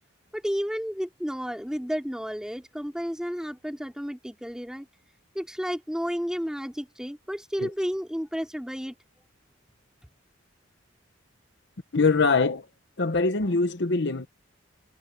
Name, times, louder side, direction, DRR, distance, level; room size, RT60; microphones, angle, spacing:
voice 1, 0.3-4.9 5.3-8.9, equal, 5° right, 3.7 m, -32 dB
voice 2, 11.9-12.7 13.0-14.3, left 3 dB, 60° left, 1.0 m, -23 dB
head